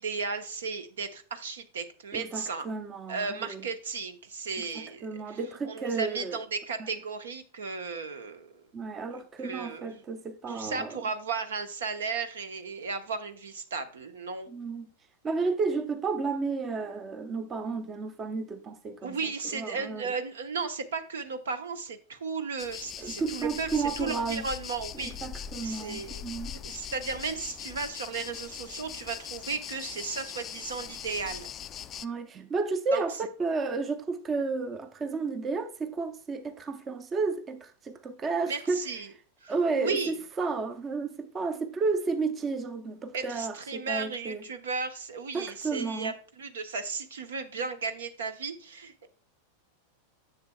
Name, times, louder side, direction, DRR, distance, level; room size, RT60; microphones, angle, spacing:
voice 1, 0.0-2.7 3.1-5.4 5.7-8.7 9.1-10.0 10.5-14.5 19.0-25.2 25.6-26.2 26.6-31.5 32.9-33.0 38.5-39.1 39.4-40.2 43.1-49.1, right 5 dB, 65° right, 0.9 m, -35 dB
voice 2, 2.1-3.7 4.6-6.4 6.8-6.9 8.7-11.0 14.5-14.9 15.2-19.2 19.5-20.1 23.0-24.5 24.9-26.6 32.0-38.8 39.5-44.4 45.3-46.1, right 4 dB, 20° right, 0.7 m, -32 dB
sound 1, 22.6-32.1, left 9 dB, 25° left, 0.3 m, -41 dB
10.5 x 7.0 x 2.2 m
figure-of-eight pair, 90°, 0 cm